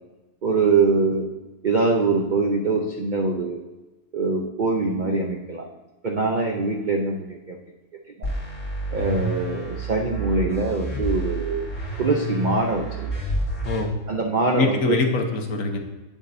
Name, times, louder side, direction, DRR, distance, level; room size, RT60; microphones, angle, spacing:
voice 1, 0.4-1.3 1.6-3.6 4.1-5.6 6.0-7.6 8.2-8.3 8.9-11.6 12.0-13.1 14.1-15.0, right 3 dB, 70° right, 2 dB, 0.4 m, -23 dB
sound 1, 8.2-13.8, right 1 dB, 45° left, 2.3 m, -29 dB
voice 2, 13.6-14.0 14.5-15.8, left 4 dB, 60° left, 4 dB, 1.2 m, -23 dB
9.0 x 7.1 x 2.6 m, 1.1 s
omnidirectional pair, 1.7 m